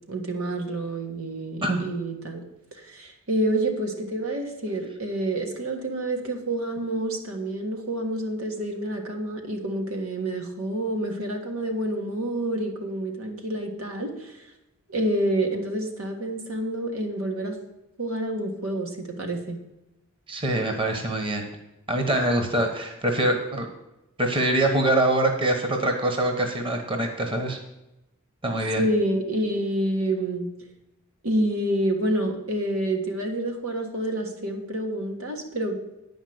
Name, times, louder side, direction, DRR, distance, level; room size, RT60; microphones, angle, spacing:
voice 1, 0.1-2.4 2.7-14.4 14.9-17.6 18.0-19.6 28.8-30.5 31.2-36.0, right 1 dB, 80° right, 3 dB, 1.6 m, -28 dB
voice 2, 20.3-21.4 21.9-23.7 24.2-27.6 28.4-28.8, right 1 dB, 25° right, 4 dB, 1.1 m, -24 dB
9.8 x 5.3 x 7.8 m, 0.92 s
head